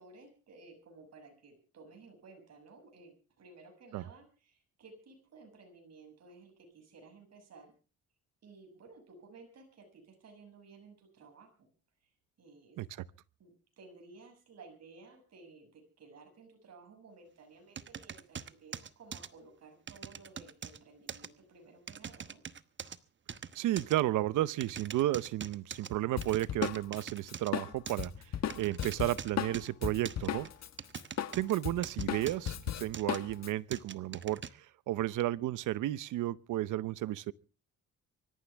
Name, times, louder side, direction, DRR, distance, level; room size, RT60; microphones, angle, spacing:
voice 1, 0.0-7.7 8.4-11.7 12.4-12.8 13.4-22.4, right 3 dB, 55° right, 6.9 m, -56 dB
sound 1, 17.8-19.3 19.9-20.8 21.1-21.3 21.9-23.0 23.3-24.0 24.6-25.9 26.2-27.5 27.9-28.1 28.5-29.7 30.1-31.5 31.8-32.5 32.9-33.2 33.7-34.5, right 7 dB, 40° right, 1.1 m, -43 dB
voice 2, 23.5-28.1 28.6-30.5 31.3-37.3, right 14 dB, 85° right, 0.8 m, -33 dB
Drum kit, 26.2-30.7 30.9-33.5, left 9 dB, 60° left, 1.5 m, -36 dB
25.0 x 14.0 x 3.4 m
cardioid pair, 90°, 30 cm